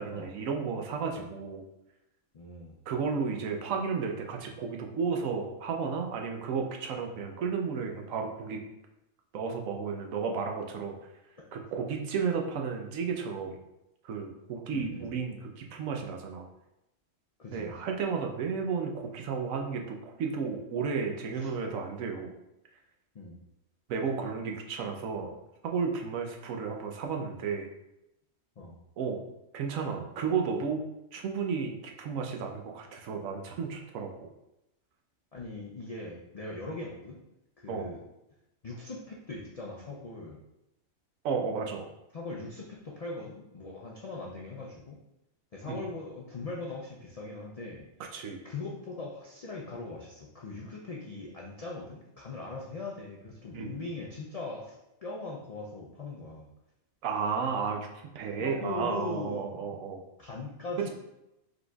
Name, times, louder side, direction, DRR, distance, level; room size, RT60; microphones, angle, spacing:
voice 1, 0.0-1.6 2.9-8.6 9.3-10.9 11.5-13.6 14.0-16.5 17.5-22.3 23.9-25.4 25.6-27.7 29.0-29.2 29.5-34.3 37.7-37.9 41.2-41.9 45.7-45.9 48.1-48.4 53.5-53.8 57.0-60.0 60.8-60.9, right 5 dB, 80° right, 2 dB, 1.1 m, -33 dB
voice 2, 2.3-2.7 14.7-15.1 17.4-17.7 21.3-21.5 23.1-23.4 28.6-28.8 35.3-37.2 37.6-38.0 38.6-40.4 42.1-45.0 45.5-47.8 48.4-54.8 55.0-56.5 58.4-59.8 60.2-60.9, left 3 dB, 80° left, -2 dB, 0.3 m, -40 dB
5.0 x 3.9 x 2.3 m, 0.89 s
omnidirectional pair, 1.4 m